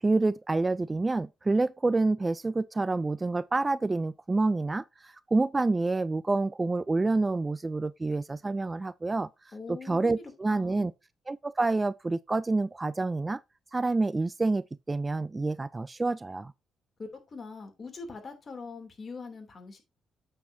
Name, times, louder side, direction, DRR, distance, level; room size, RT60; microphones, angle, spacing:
voice 1, 0.0-9.3 9.7-10.9 11.3-13.4 13.7-16.5, right 3 dB, 20° right, 0.3 m, -28 dB
voice 2, 9.5-10.9 17.0-19.8, left 4 dB, 40° left, 2.9 m, -43 dB
8.6 x 7.4 x 2.7 m
cardioid pair, 90°, 0 cm